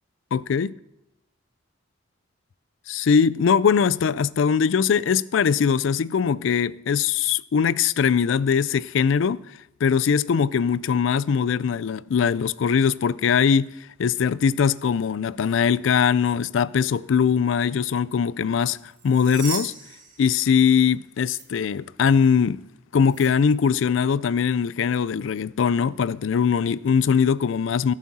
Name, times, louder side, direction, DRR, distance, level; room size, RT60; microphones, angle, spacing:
voice 1, 0.3-0.7 2.9-9.4 9.8-13.7 14.0-18.8 19.0-19.7 20.2-22.6 22.9-27.9, left 6 dB, 80° left, 0.4 m, -21 dB
sound 1, 18.8-20.9 21.2-21.4 23.1-23.3, right 5 dB, 40° right, 2.4 m, -37 dB
17.5 x 7.4 x 4.2 m
head